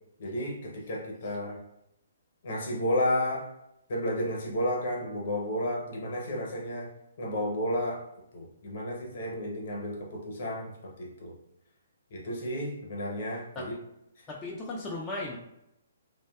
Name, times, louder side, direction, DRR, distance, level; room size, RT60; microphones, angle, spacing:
voice 1, 0.2-1.6 2.4-3.5 3.9-6.9 7.2-8.0 8.3-11.3 12.1-13.7 14.2-14.3, left 1 dB, 55° left, 0 dB, 0.7 m, -32 dB
voice 2, 14.3-15.4, left 2 dB, 15° left, -4 dB, 0.3 m, -36 dB
2.6 x 2.1 x 2.2 m, 0.83 s
hypercardioid pair, 140°, 0 cm